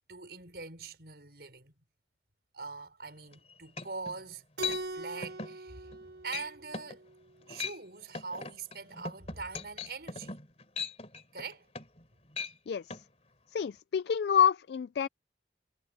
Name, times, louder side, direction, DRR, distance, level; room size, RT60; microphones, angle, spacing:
voice 1, 0.1-1.7 2.5-5.9 6.2-7.0 7.5-10.4 11.3-11.7, right 4 dB, 65° right, 5.9 m, -43 dB
sound 1, 3.3-3.4 3.8-4.2 4.6-4.8 5.2-5.6 5.9-6.1 6.3-6.5 6.7-7.0 7.4-7.8 8.1-12.0 12.3-12.5 12.9-13.0, left 5 dB, 35° left, 3.4 m, -39 dB
Keyboard (musical), 4.6-7.2, right 2 dB, 85° right, 3.9 m, -41 dB
voice 2, 12.7-13.0 13.5-15.1, left 8 dB, 70° left, 0.3 m, -28 dB
head